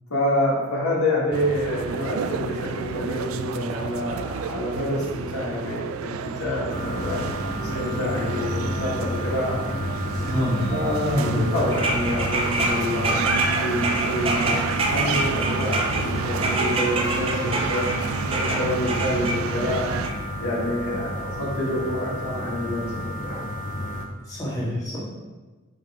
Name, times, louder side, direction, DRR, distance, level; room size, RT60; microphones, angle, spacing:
voice 1, 0.1-6.1 6.4-7.2 7.6-9.6 10.7-17.9 18.2-19.9 20.4-23.4, left 1 dB, 90° left, -5 dB, 1.9 m, -27 dB
sound 1, 1.3-20.1, right 6 dB, 75° right, 0.3 m, -31 dB
sound 2, 6.7-24.1, left 1 dB, 35° left, 0.6 m, -31 dB
voice 2, 10.1-10.7 11.1-11.5 24.3-25.0, equal, 15° left, -8 dB, 1.6 m, -26 dB
sound 3, 11.7-19.4 20.0-20.1, right 2 dB, 25° right, 0.6 m, -27 dB
5.9 x 5.2 x 3.6 m, 1.2 s
head